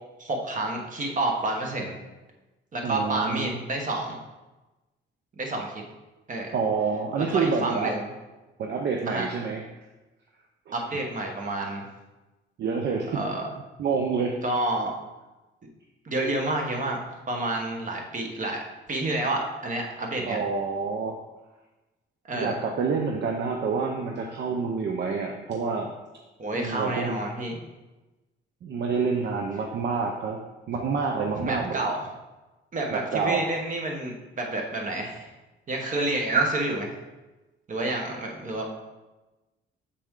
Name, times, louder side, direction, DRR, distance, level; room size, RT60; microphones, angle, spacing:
voice 1, 0.2-1.9 2.7-4.2 5.4-5.8 6.3-6.5 7.3-8.1 9.1-9.3 10.7-11.9 13.1-13.5 14.4-14.9 16.0-18.6 18.9-20.4 22.2-22.6 26.4-27.6 31.4-32.1 32.7-35.3 35.7-36.9 37.7-38.8, right 2 dB, 40° right, 1 dB, 1.3 m, -29 dB
voice 2, 2.8-3.6 6.5-7.9 8.6-9.6 10.7-10.8 12.6-13.2 13.8-14.4 20.3-21.2 22.3-25.9 26.5-27.2 28.6-30.4 30.7-31.8 32.9-33.5, right 5 dB, 60° right, 2 dB, 0.6 m, -28 dB
6.8 x 4.2 x 3.7 m, 1.1 s
cardioid pair, 90°, 20 cm